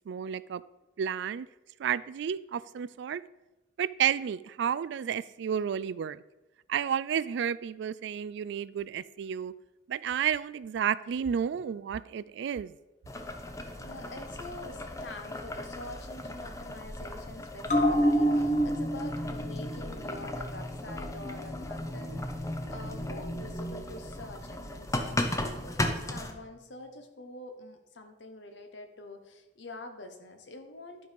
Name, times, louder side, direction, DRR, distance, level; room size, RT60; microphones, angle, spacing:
voice 1, 0.1-0.6 1.0-1.5 1.8-3.2 3.8-6.2 6.7-9.5 9.9-12.7, right 8 dB, 65° right, 18 dB, 0.3 m, -31 dB
Boiling, 13.1-26.3, left 1 dB, 15° left, 0.7 m, -37 dB
voice 2, 13.8-31.1, left 2 dB, 65° left, 6 dB, 1.2 m, -46 dB
sound 1, 17.7-24.6 24.9-25.0, equal, 40° left, 1.1 m, -30 dB
11.5 x 4.7 x 5.2 m, 1.0 s
head